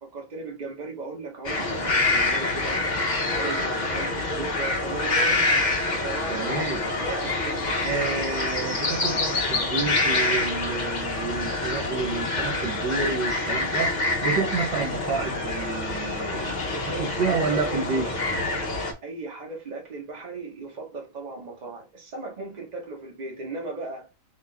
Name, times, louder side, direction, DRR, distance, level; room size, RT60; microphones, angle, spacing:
voice 1, 0.0-5.5 5.9-7.6 16.9-18.1 19.0-24.1, right 3 dB, 25° right, 1.1 m, -37 dB
sound 1, 1.4-18.9, left 2 dB, 60° left, 0.4 m, -26 dB
voice 2, 6.3-6.8 7.8-18.1, right 5 dB, 70° right, 1.6 m, -29 dB
3.8 x 3.3 x 3.4 m
omnidirectional pair, 2.1 m